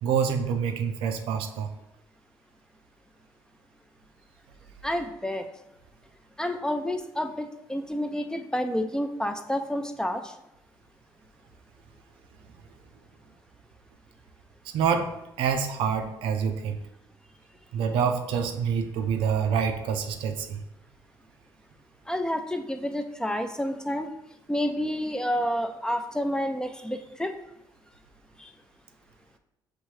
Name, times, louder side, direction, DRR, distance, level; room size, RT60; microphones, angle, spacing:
voice 1, 0.0-1.7 14.7-16.8 17.7-20.6, right 7 dB, 80° right, 6 dB, 0.5 m, -27 dB
voice 2, 4.8-5.5 6.4-10.3 22.1-24.1 24.5-27.3 28.4-28.5, equal, 10° left, 6 dB, 0.4 m, -29 dB
5.9 x 2.7 x 3.1 m, 0.88 s
supercardioid pair, 70°, 9 cm